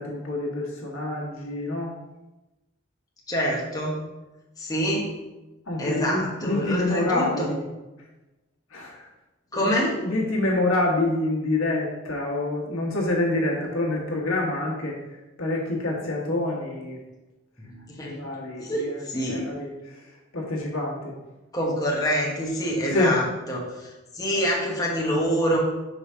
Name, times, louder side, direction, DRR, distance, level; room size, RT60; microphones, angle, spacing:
voice 1, 0.0-1.9 5.7-7.6 8.7-9.1 9.5-14.9 15.4-17.0 18.0-20.0 20.3-21.1 22.9-23.2, left 2 dB, 90° left, -3 dB, 1.4 m, -27 dB
voice 2, 3.3-4.0 4.6-5.1 5.8-7.5 9.5-10.0 17.6-18.1 18.6-19.4 21.5-25.6, equal, 20° left, -3 dB, 1.2 m, -26 dB
5.0 x 3.5 x 5.6 m, 1.0 s
head